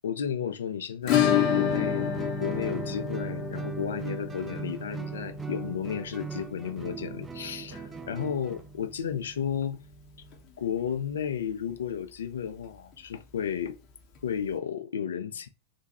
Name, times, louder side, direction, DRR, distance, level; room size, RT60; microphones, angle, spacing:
voice 1, 0.0-9.8 10.6-13.8 14.2-15.5, left 8 dB, 65° left, 0.4 m, -33 dB
Acoustic guitar / Strum, 1.1-9.7 9.9-10.0 10.3-10.4 10.8-10.9 12.9-13.0 14.2-14.3, left 8 dB, 35° left, 0.7 m, -30 dB
Guitar, 1.2-8.7, right 5 dB, 15° right, 0.4 m, -41 dB
3.3 x 2.2 x 2.8 m
figure-of-eight pair, 90°, 0 cm